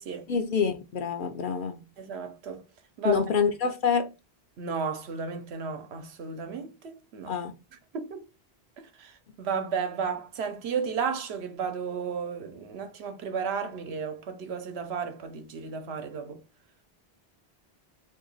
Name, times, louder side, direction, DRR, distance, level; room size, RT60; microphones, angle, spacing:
voice 1, 0.3-1.8 3.0-4.1 7.3-7.5, left 6 dB, 60° left, 0.7 m, -26 dB
voice 2, 2.0-2.6 3.0-3.2 4.6-7.4 7.9-8.2 9.0-16.4, right 6 dB, 80° right, 1.0 m, -33 dB
2.8 x 2.7 x 3.9 m
omnidirectional pair, 1.1 m